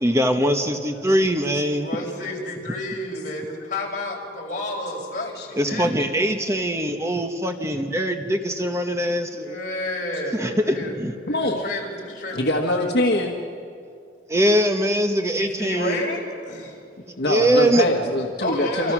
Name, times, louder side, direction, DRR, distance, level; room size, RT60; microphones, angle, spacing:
voice 1, 0.0-1.9 5.5-9.6 10.3-11.1 14.3-16.0 17.3-17.8, equal, 15° right, 5 dB, 1.1 m, -22 dB
voice 2, 1.8-5.9 7.5-7.7 9.3-12.4 12.8-12.9 15.3-16.8 18.4-18.9, left 1 dB, 50° left, -1 dB, 5.1 m, -31 dB
voice 3, 11.3-11.6 12.3-13.4 17.2-18.9, left 1 dB, 70° left, 2 dB, 1.5 m, -23 dB
29.0 x 25.5 x 6.2 m, 2.4 s
head